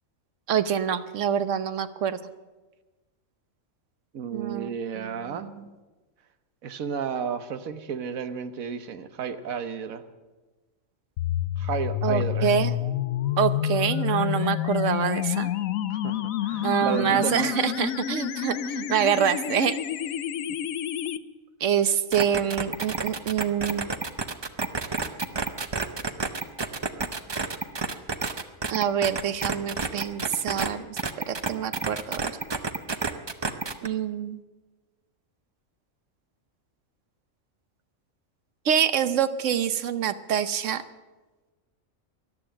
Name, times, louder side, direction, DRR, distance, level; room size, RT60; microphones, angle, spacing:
voice 1, 0.5-2.2 4.3-5.6 12.0-12.7 13.4-15.5 16.6-19.8 21.6-23.9 28.7-30.9 31.3-32.3 33.8-34.4 38.6-40.8, right 8 dB, 65° right, 13 dB, 1.1 m, -26 dB
voice 2, 4.1-5.5 6.6-10.0 11.6-12.5 15.9-17.5, right 7 dB, 85° right, 10 dB, 1.4 m, -33 dB
sound 1, 11.2-21.2, left 11 dB, 80° left, 1.1 m, -28 dB
sound 2, 22.1-30.7 31.0-33.9, right 4 dB, 30° right, 0.5 m, -29 dB
14.0 x 11.5 x 8.8 m, 1.2 s
omnidirectional pair, 1.4 m